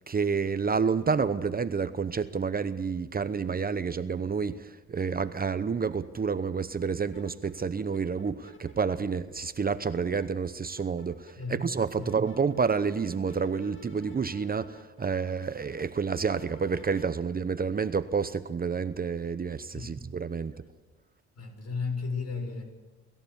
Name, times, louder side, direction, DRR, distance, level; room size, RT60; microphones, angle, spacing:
voice 1, 0.1-20.6, right 5 dB, 30° right, 0.8 m, -29 dB
sound 1, 6.7-6.8 7.1-8.9 9.3-10.3 10.6-17.1, equal, 40° left, 2.1 m, -52 dB
voice 2, 19.7-20.0 21.3-22.6, left 4 dB, 55° left, 6.8 m, -34 dB
27.0 x 14.5 x 7.1 m
cardioid pair, 90°, 30 cm